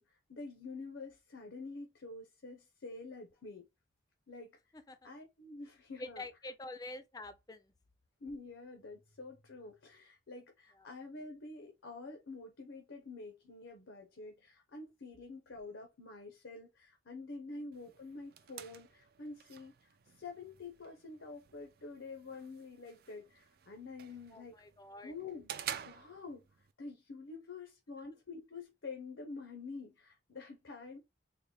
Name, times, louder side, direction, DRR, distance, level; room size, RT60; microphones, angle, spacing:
voice 1, 0.0-3.6 4.3-4.6 5.0-6.2 8.2-19.7 20.2-24.6 25.0-26.5 26.8-31.0, left 3 dB, 90° left, 0.8 m, -48 dB
voice 2, 4.7-5.1 6.0-7.7 10.8-10.9 24.3-25.1 28.0-28.1, left 2 dB, 20° left, 0.4 m, -47 dB
sound 1, 17.7-26.7, right 9 dB, 55° right, 0.3 m, -50 dB
3.9 x 2.2 x 3.2 m
head